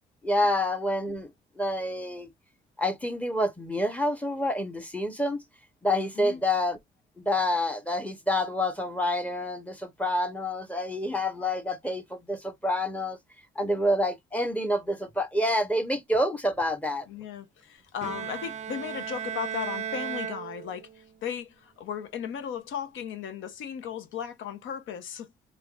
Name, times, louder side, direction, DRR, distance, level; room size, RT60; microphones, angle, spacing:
voice 1, 0.2-1.3 1.6-2.3 2.8-5.4 5.8-6.8 7.2-13.2 13.6-17.0, left 1 dB, 5° left, 1.0 m, -28 dB
voice 2, 17.1-25.3, left 8 dB, 80° left, 0.9 m, -36 dB
Bowed string instrument, 18.0-21.1, right 9 dB, 35° right, 0.4 m, -36 dB
3.4 x 3.0 x 2.4 m
cardioid pair, 90°, 20 cm